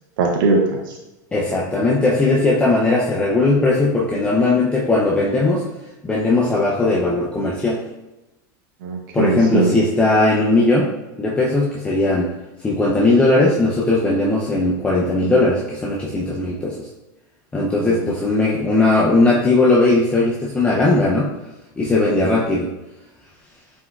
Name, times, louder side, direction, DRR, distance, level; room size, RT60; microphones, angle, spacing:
voice 1, 0.2-1.0 8.8-9.8 17.8-18.1, right 3 dB, 80° right, 0 dB, 0.6 m, -20 dB
voice 2, 1.3-5.7 6.0-7.8 9.1-10.9 11.2-12.3 12.6-16.9 17.5-21.3 21.8-22.7, left 2 dB, 10° left, -6 dB, 0.5 m, -18 dB
4.4 x 4.2 x 2.3 m, 0.99 s
supercardioid pair, 150°, 11 cm